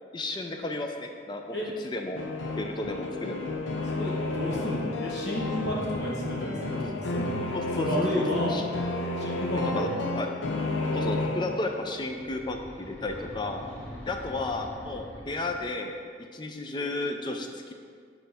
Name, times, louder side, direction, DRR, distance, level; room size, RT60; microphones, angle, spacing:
voice 1, 0.1-2.2 2.6-3.5 6.8-6.9 7.5-8.7 9.7-10.3 10.9-13.6 14.1-16.0 16.3-17.7, left 2 dB, 25° left, 4 dB, 0.4 m, -33 dB
sound 1, 2.2-12.0, left 2 dB, 80° left, 0.5 m, -31 dB
voice 2, 3.8-7.4 7.7-8.6 9.2-10.1, left 1 dB, 60° left, -5 dB, 1.2 m, -31 dB
sound 2, 11.9-15.8, equal, 10° left, 0.9 m, -44 dB
6.6 x 4.3 x 3.5 m, 2.1 s
head